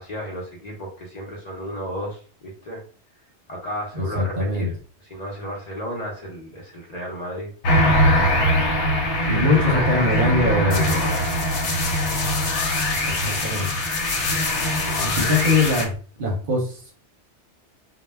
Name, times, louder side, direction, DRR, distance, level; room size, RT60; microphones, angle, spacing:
voice 1, 0.0-2.8 3.5-4.7 5.0-7.5 9.3-11.2 14.8-15.3, equal, 45° left, -3 dB, 0.6 m, -33 dB
voice 2, 3.9-4.7 9.3-10.9 13.1-13.8 15.0-16.9, left 2 dB, 55° right, 0 dB, 0.7 m, -23 dB
sound 1, 7.6-15.9, left 1 dB, 75° left, 0.9 m, -22 dB
2.2 x 2.0 x 3.2 m, 0.41 s
omnidirectional pair, 1.2 m